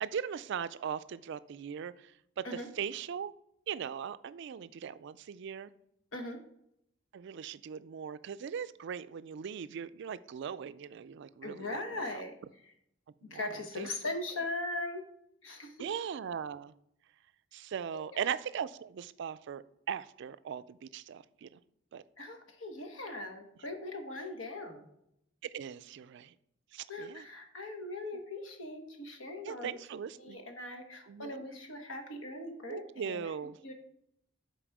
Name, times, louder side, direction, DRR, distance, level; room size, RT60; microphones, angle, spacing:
voice 1, 0.0-2.1 2.4-2.5 2.8-3.3 3.7-5.7 7.1-11.8 13.2-13.5 13.8-13.9 15.8-16.7 17.5-21.5 21.9-22.0 25.4-26.3 26.7-27.2 29.4-30.4 31.1-31.5 32.7-33.6, right 7 dB, 60° right, 15 dB, 0.3 m, -39 dB
voice 2, 11.4-12.3 13.2-15.0 15.4-15.7 17.9-18.2 22.2-24.9 26.9-29.8 30.2-33.7, left 2 dB, 85° left, 5 dB, 1.2 m, -40 dB
7.8 x 4.2 x 4.7 m, 0.75 s
head